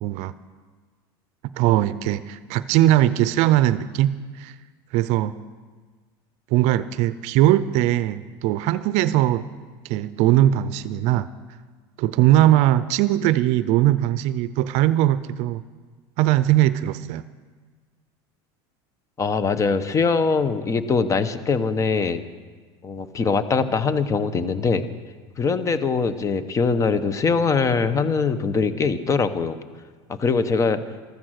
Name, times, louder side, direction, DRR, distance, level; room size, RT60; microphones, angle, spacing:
voice 1, 0.0-0.3 1.6-4.1 4.4-4.5 4.9-5.3 6.5-9.4 9.8-11.3 12.0-15.6 16.2-17.2, right 13 dB, 60° right, 15 dB, 0.6 m, -20 dB
voice 2, 19.2-22.2 22.8-24.9 25.4-29.6 30.1-30.8, left 5 dB, 25° left, 12 dB, 1.0 m, -22 dB
14.0 x 13.5 x 6.5 m, 1.5 s
supercardioid pair, 125°, 13 cm